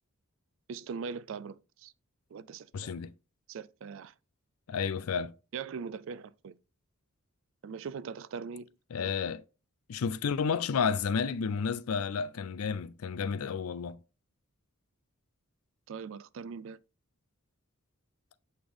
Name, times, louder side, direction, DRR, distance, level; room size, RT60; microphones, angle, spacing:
voice 1, 0.7-1.9 2.3-2.9 3.5-4.1 5.5-6.5 7.6-8.7 9.0-9.1 15.9-16.8, right 5 dB, 60° right, 0.3 m, -41 dB
voice 2, 2.7-3.1 4.7-5.3 8.9-9.4 9.9-14.0, left 6 dB, 80° left, 0.4 m, -31 dB
7.9 x 3.4 x 3.7 m
head